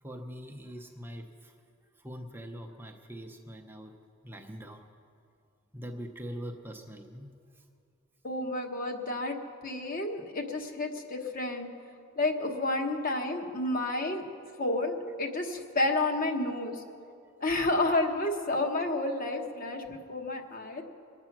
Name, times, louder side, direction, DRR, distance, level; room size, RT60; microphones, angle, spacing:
voice 1, 0.0-1.5 2.0-3.9 4.2-4.8 5.7-7.6, equal, 10° right, 2 dB, 0.7 m, -43 dB
voice 2, 8.2-9.4 9.6-11.7 12.2-14.3 14.6-16.8 17.4-20.8, left 2 dB, 40° left, 3 dB, 1.2 m, -30 dB
23.0 x 8.8 x 6.0 m, 2.4 s
head